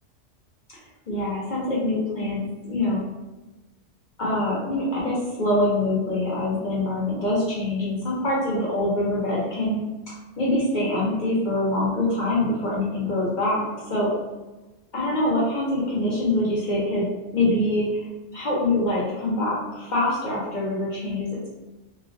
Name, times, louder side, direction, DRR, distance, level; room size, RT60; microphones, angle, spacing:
voice 1, 1.1-2.4 2.7-3.0 4.2-9.8 10.4-14.1 14.9-17.1 17.3-18.0 18.3-21.5, left 1 dB, 50° left, -6 dB, 0.6 m, -24 dB
2.3 x 2.1 x 2.5 m, 1.1 s
omnidirectional pair, 1.2 m